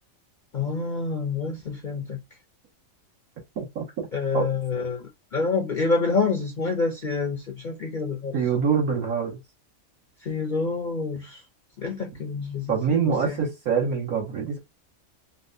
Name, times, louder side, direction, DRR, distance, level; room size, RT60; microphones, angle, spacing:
voice 1, 0.5-2.2 4.1-8.4 10.2-11.4 11.8-13.5, left 4 dB, 55° left, 0.5 m, -27 dB
voice 2, 8.3-9.4 12.7-14.6, right 6 dB, 80° right, 2.1 m, -25 dB
4.0 x 2.3 x 2.6 m
omnidirectional pair, 1.5 m